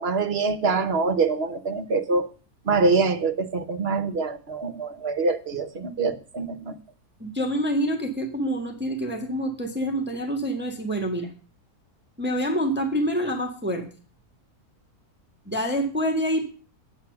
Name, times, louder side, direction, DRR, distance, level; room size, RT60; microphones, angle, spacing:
voice 1, 0.0-2.3 2.6-6.8, right 4 dB, 45° right, 9 dB, 1.1 m, -25 dB
voice 2, 7.2-11.3 12.2-13.9 15.4-16.5, equal, 5° right, 3 dB, 1.5 m, -26 dB
8.9 x 7.8 x 6.7 m, 0.38 s
omnidirectional pair, 1.6 m